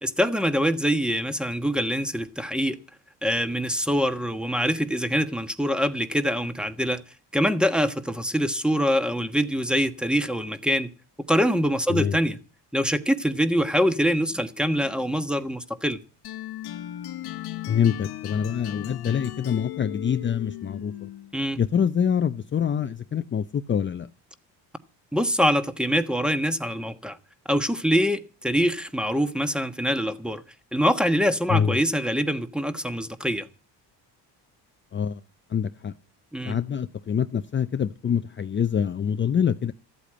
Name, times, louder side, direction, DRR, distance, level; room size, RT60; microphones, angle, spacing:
voice 1, 0.0-2.8 3.2-7.0 7.3-10.9 11.3-12.4 12.7-16.0 21.3-21.6 25.1-27.2 27.5-30.4 30.7-33.5 36.3-36.6, equal, ahead, 1.2 m, -24 dB
sound 1, 16.2-21.4, left 13 dB, 60° left, 1.1 m, -36 dB
voice 2, 17.7-21.1 21.6-24.1 31.5-31.8 34.9-35.2 35.5-35.9 36.5-39.7, left 8 dB, 30° left, 0.6 m, -25 dB
14.0 x 8.4 x 8.7 m
cardioid pair, 100°, 42 cm